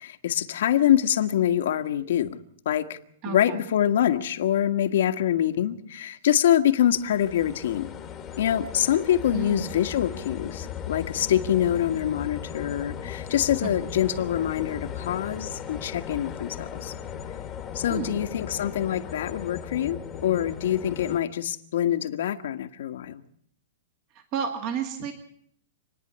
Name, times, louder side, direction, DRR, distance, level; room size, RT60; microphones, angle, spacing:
voice 1, 0.0-2.4 2.6-3.0 3.2-8.0 8.4-16.9 17.7-23.2, left 11 dB, 60° left, 1.6 m, -25 dB
voice 2, 3.2-3.6 9.3-9.7 13.6-13.7 17.9-18.2 24.1-25.1, right 6 dB, 30° right, 2.2 m, -32 dB
sound 1, 6.8-21.2, left 8 dB, 15° left, 1.7 m, -37 dB
28.0 x 10.0 x 9.9 m
supercardioid pair, 170°, 0 cm